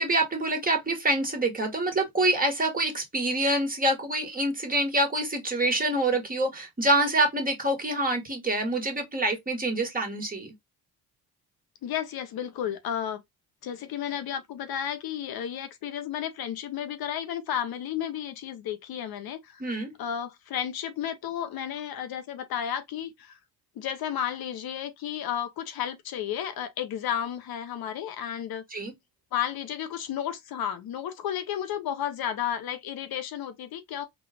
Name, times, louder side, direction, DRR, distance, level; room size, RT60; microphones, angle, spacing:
voice 1, 0.0-10.5 19.6-19.9 28.7-28.9, right 1 dB, 20° right, 1.6 m, -26 dB
voice 2, 11.8-13.2 13.6-19.6 20.0-23.4 23.8-28.6 29.3-34.1, left 9 dB, 60° left, 0.7 m, -32 dB
3.9 x 2.4 x 3.4 m
cardioid pair, 80°, 41 cm